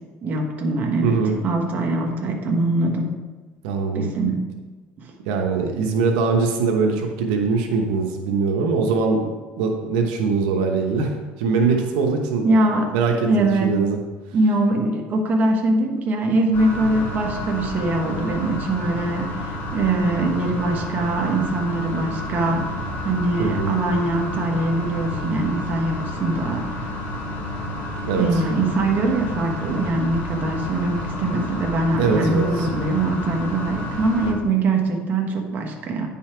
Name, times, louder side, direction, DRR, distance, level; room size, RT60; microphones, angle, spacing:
voice 1, 0.2-3.1 3.9-4.5 12.4-13.0 13.2-13.8 14.3-22.7 23.0-26.7 28.2-36.1, right 2 dB, 40° right, 2 dB, 1.5 m, -22 dB
voice 2, 1.0-1.4 3.6-4.1 5.2-12.5 12.9-14.0 23.4-23.7 28.0-28.4 32.0-32.7, right 4 dB, 85° right, 2 dB, 1.1 m, -22 dB
sound 1, 16.5-34.3, left 1 dB, 50° left, 2.2 m, -30 dB
9.8 x 5.6 x 4.5 m, 1.3 s
cardioid pair, 120°, 5 cm